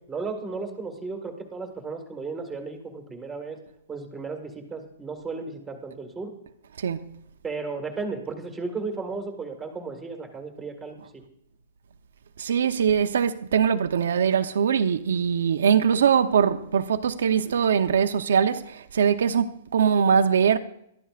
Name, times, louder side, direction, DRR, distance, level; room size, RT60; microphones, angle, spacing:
voice 1, 0.1-3.6 3.9-6.3 7.4-11.2, right 4 dB, 5° right, 1.8 m, -34 dB
voice 2, 12.4-20.6, right 7 dB, 85° right, 0.8 m, -22 dB
21.5 x 13.5 x 2.5 m
hypercardioid pair, 170°, 0 cm